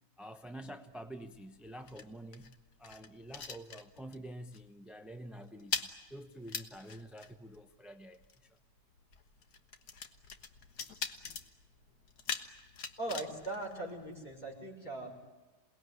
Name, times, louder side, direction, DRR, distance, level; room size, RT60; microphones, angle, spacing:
voice 1, 0.2-2.5 2.8-8.6, right 1 dB, ahead, 0.6 m, -48 dB
sound 1, 0.9-4.3 4.5-4.8 5.1-14.5, left 6 dB, 90° left, 1.9 m, -43 dB
voice 2, 13.0-15.2, right 2 dB, 30° left, 5.6 m, -40 dB
27.5 x 19.5 x 9.7 m
omnidirectional pair, 1.6 m